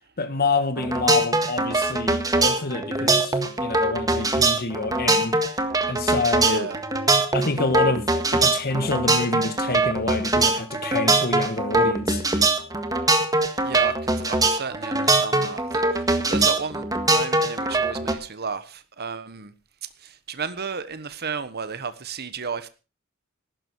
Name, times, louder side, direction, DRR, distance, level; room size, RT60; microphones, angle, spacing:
voice 1, 0.2-5.4 5.9-6.7 7.3-12.2, left 3 dB, 45° left, 1.5 m, -27 dB
sound 1, 0.8-18.1, right 2 dB, 15° right, 1.7 m, -22 dB
voice 2, 6.4-6.8 13.4-19.5 20.0-22.7, right 5 dB, 50° right, 1.3 m, -33 dB
15.0 x 12.5 x 4.7 m
head